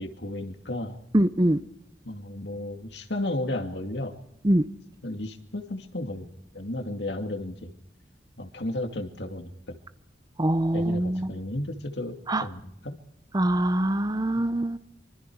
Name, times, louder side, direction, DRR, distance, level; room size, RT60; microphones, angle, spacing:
voice 1, 0.0-1.0 2.0-4.2 5.0-7.7 8.4-9.8 10.7-13.0 14.3-14.4, left 1 dB, 70° left, 2.4 m, -33 dB
voice 2, 1.1-1.6 4.4-4.6 10.4-11.3 12.3-12.4 13.3-14.8, right 1 dB, 20° right, 0.7 m, -23 dB
25.5 x 25.0 x 4.7 m
head